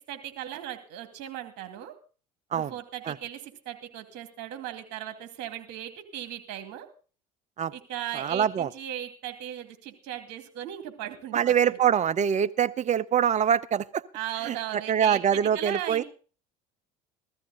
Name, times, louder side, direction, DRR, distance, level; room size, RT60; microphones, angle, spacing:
voice 1, 0.1-1.9 2.5-6.9 7.7-11.8 14.1-16.0, right 11 dB, 65° right, 7 dB, 2.3 m, -37 dB
voice 2, 8.1-8.7 11.3-14.0 14.5-16.0, right 8 dB, 35° right, 17 dB, 0.7 m, -24 dB
15.0 x 13.5 x 3.9 m, 0.38 s
hypercardioid pair, 75°, 20 cm